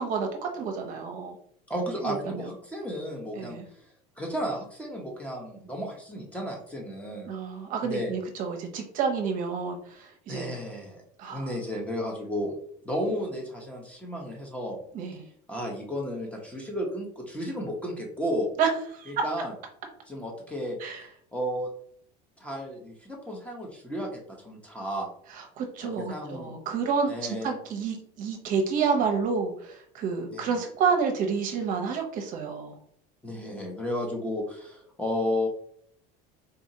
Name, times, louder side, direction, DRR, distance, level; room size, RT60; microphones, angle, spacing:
voice 1, 0.0-1.3 2.0-2.5 3.4-3.6 7.3-10.5 11.2-11.5 14.9-15.2 18.6-18.7 18.9-19.1 20.8-21.0 25.6-32.7, right 5 dB, 50° right, 3 dB, 0.7 m, -29 dB
voice 2, 1.7-3.6 4.2-7.3 7.8-8.1 10.3-11.0 11.3-12.5 12.8-14.8 15.5-18.5 19.1-19.5 20.1-20.8 21.3-21.7 22.4-25.1 25.8-26.5 27.1-27.5 30.3-30.6 33.2-35.5, equal, 5° left, 0 dB, 0.7 m, -33 dB
3.8 x 2.7 x 2.7 m, 0.63 s
cardioid pair, 140°, 18 cm